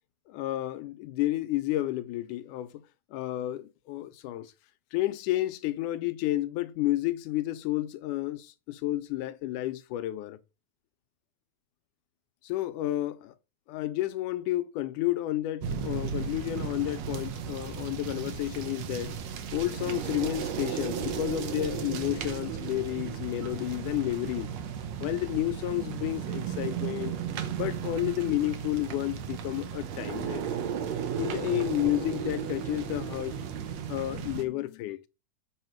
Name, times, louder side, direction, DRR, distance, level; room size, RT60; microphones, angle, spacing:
voice 1, 0.3-2.8 3.1-4.5 4.9-10.4 12.4-13.3 13.7-19.2 19.5-24.5 25.0-27.1 27.5-30.4 31.2-33.4 33.9-35.0, left 15 dB, 80° left, 2.2 m, -31 dB
sound 1, 15.6-34.4, right 8 dB, 65° right, 2.0 m, -35 dB
7.9 x 6.4 x 4.5 m
omnidirectional pair, 3.8 m